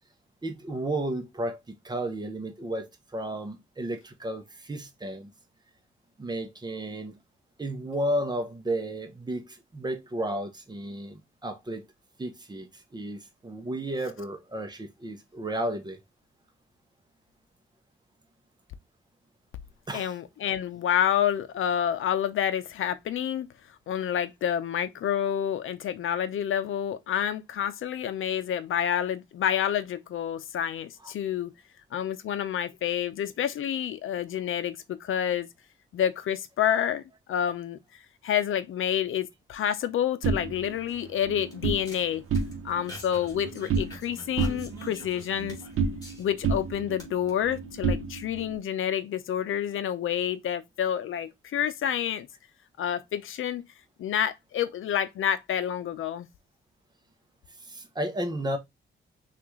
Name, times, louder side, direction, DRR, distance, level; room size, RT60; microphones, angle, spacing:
voice 1, 0.4-5.3 6.2-7.1 7.6-11.8 12.2-16.0 19.9-20.2 31.0-31.1 57.6-58.6, right 1 dB, 20° right, 0.7 m, -33 dB
voice 2, 19.9-23.5 23.9-31.5 31.9-35.5 35.9-37.0 37.3-37.8 38.2-42.2 42.6-45.6 46.2-52.3 52.8-53.6 54.0-56.3, left 9 dB, 70° left, 0.6 m, -28 dB
sound 1, 40.2-41.8 42.2-42.9 43.1-44.1 44.4-46.2 46.4-48.5, right 5 dB, 85° right, 0.8 m, -30 dB
sound 2, 40.7-46.6 46.9-47.3, left 1 dB, 20° left, 2.2 m, -47 dB
5.9 x 2.5 x 3.1 m
wide cardioid pair, 145°, 21 cm